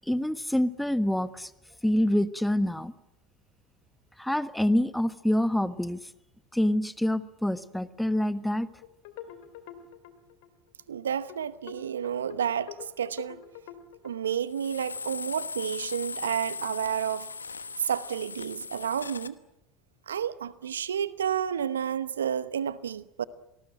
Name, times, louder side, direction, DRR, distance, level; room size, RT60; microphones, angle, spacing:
voice 1, 0.1-1.5 1.8-2.9 4.2-6.1 6.5-8.7, left 1 dB, 5° left, 1.3 m, -26 dB
sound 1, 8.8-10.5 10.8-10.9 11.3-11.4 11.7-14.1, left 11 dB, 65° left, 2.6 m, -45 dB
voice 2, 10.9-13.4 14.0-17.3 17.8-19.4 20.1-23.2, right 8 dB, 80° right, 0.9 m, -30 dB
sound 2, 14.5-19.3, left 5 dB, 90° left, 1.1 m, -38 dB
27.5 x 19.0 x 9.0 m
hypercardioid pair, 75°, 0 cm